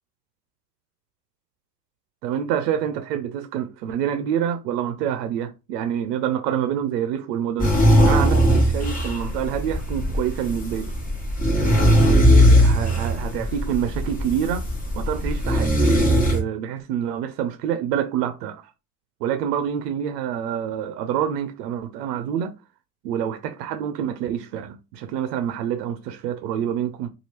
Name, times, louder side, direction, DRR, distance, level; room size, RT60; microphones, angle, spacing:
voice 1, 2.2-7.7 8.0-10.9 11.6-14.7 14.9-15.8 16.3-18.7 19.2-22.6 23.0-27.1, right 9 dB, 85° right, 0.6 m, -27 dB
sound 1, 7.6-16.4, equal, 15° left, 1.1 m, -19 dB
2.8 x 2.5 x 3.1 m
supercardioid pair, 95°, 47 cm